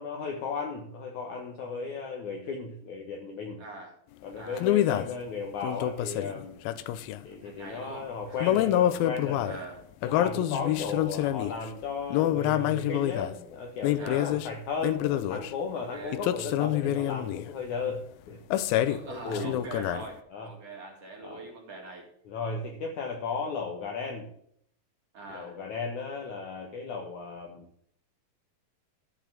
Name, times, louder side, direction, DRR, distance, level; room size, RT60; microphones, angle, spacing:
voice 1, 0.0-3.6 4.2-6.5 7.2-9.4 10.0-19.6 20.3-20.5 21.2-21.4 22.3-24.3 25.3-27.7, left 4 dB, 65° left, 1 dB, 2.4 m, -35 dB
voice 2, 3.6-3.9 4.4-4.7 7.4-8.6 9.2-9.8 14.0-14.4 15.7-16.2 18.8-22.1 25.1-25.6, right 3 dB, 45° right, 0 dB, 3.0 m, -43 dB
sound 1, 4.6-5.1 5.6-7.2 8.4-9.6 10.0-11.6 12.1-13.3 13.8-14.5 14.8-15.5 16.1-17.5 18.5-19.1 19.3-20.1, left 12 dB, 80° left, 2.3 m, -27 dB
13.5 x 5.2 x 7.4 m, 0.66 s
omnidirectional pair, 4.4 m